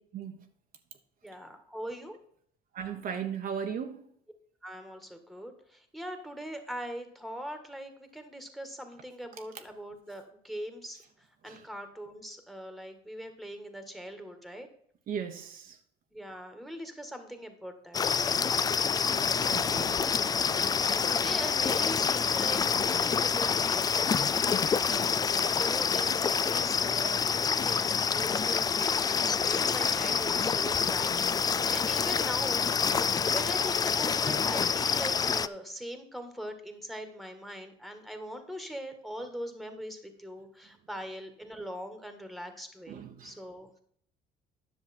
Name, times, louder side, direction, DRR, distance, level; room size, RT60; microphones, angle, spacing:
voice 1, 1.2-2.2 4.6-11.0 11.4-14.7 16.1-18.4 20.8-32.7 33.0-43.7, equal, ahead, 1.6 m, -41 dB
voice 2, 2.7-4.0 11.5-11.6 15.1-15.8 18.4-18.5 19.5-20.0 42.9-43.3, right 7 dB, 55° right, 1.1 m, -37 dB
sound 1, 17.9-35.5, left 6 dB, 25° left, 0.3 m, -27 dB
10.0 x 6.7 x 4.3 m
cardioid pair, 110°, 17 cm